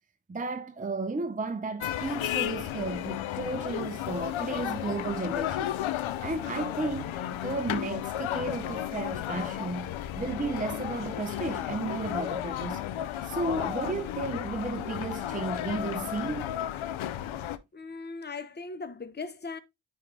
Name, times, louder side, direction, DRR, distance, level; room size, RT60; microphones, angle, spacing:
voice 1, 0.3-7.2 7.4-12.8 13.2-16.5, right 3 dB, 20° right, 0.6 m, -34 dB
Ambience at a Chinese restaurant street, 1.8-17.6, left 12 dB, 85° left, 0.6 m, -33 dB
voice 2, 17.7-19.6, left 4 dB, 20° left, 0.9 m, -39 dB
9.2 x 3.7 x 3.3 m
cardioid pair, 45°, 46 cm